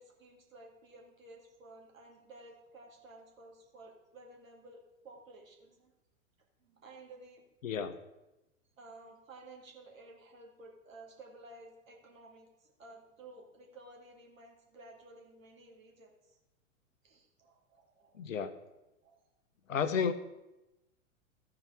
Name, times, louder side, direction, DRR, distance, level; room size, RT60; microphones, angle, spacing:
voice 1, 0.0-5.9 6.6-7.4 8.8-16.4 17.0-18.2 19.0-19.2, right 2 dB, 75° right, 0 dB, 2.3 m, -54 dB
voice 2, 7.6-7.9 18.2-18.5 19.7-20.1, left 6 dB, 70° left, 11 dB, 0.9 m, -31 dB
13.5 x 4.7 x 4.9 m, 0.98 s
figure-of-eight pair, 100°, 40 cm